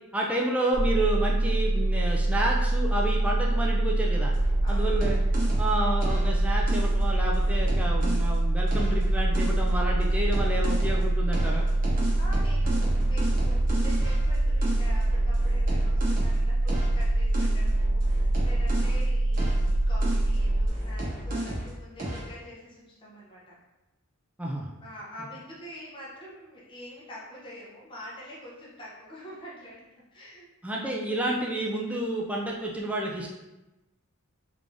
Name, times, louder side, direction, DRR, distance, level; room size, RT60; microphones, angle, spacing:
voice 1, 0.1-4.3 4.7-5.2 5.6-11.6 18.8-18.9 24.4-24.7 30.6-33.3, right 1 dB, 5° right, -2 dB, 0.3 m, -30 dB
sound 1, 0.7-20.7, right 2 dB, 75° right, 0.4 m, -25 dB
sound 2, 4.3-8.3 8.7-11.0 11.3-19.0 19.3-21.7 22.0-22.3, equal, 40° right, 1.0 m, -32 dB
voice 2, 4.6-4.9 12.2-23.5 24.8-29.8 30.1-30.5, equal, 20° left, -6 dB, 0.7 m, -45 dB
3.5 x 3.3 x 2.5 m, 1.0 s
head